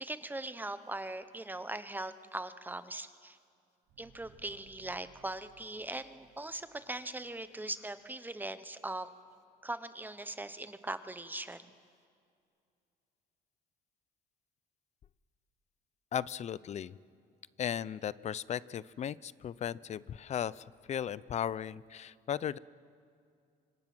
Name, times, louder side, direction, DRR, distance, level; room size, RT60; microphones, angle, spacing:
voice 1, 0.0-3.4 4.0-9.1 9.6-11.7, right 2 dB, 10° right, 12 dB, 0.9 m, -40 dB
sound 1, 3.8-8.4 8.7-8.8, right 6 dB, 85° right, 5.3 m, -64 dB
voice 2, 16.1-17.0 17.6-22.6, left 9 dB, 40° left, 20 dB, 0.5 m, -36 dB
26.0 x 25.0 x 6.1 m, 2.4 s
cardioid pair, 110°, 17 cm